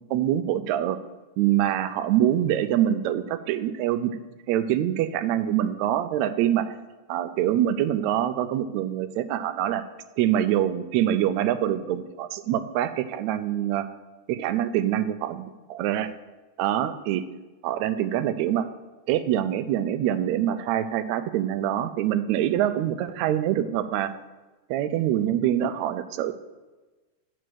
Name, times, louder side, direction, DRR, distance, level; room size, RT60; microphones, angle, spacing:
voice 1, 0.1-1.0 1.4-4.1 4.5-6.7 7.1-9.8 10.2-13.9 14.3-16.1 16.6-17.2 17.6-18.7 19.1-24.1 24.7-26.3, right 11 dB, 80° right, 10 dB, 1.8 m, -25 dB
10.0 x 4.6 x 6.1 m, 1.2 s
omnidirectional pair, 3.4 m